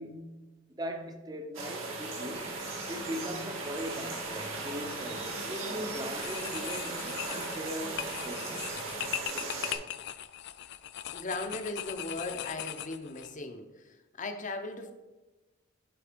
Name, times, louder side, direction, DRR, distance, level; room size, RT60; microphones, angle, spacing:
voice 1, 0.0-2.6 2.9-8.7, equal, 20° right, 0.8 m, -40 dB
sound 1, 1.5-9.7, right 3 dB, 70° right, 2.2 m, -38 dB
sound 2, 2.3-9.2, right 2 dB, 45° right, 1.5 m, -47 dB
sound 3, 5.3-5.7 6.1-13.3, left 11 dB, 55° left, 0.4 m, -40 dB
voice 2, 11.1-14.9, left 2 dB, 40° left, 0.9 m, -38 dB
11.0 x 4.1 x 5.2 m
head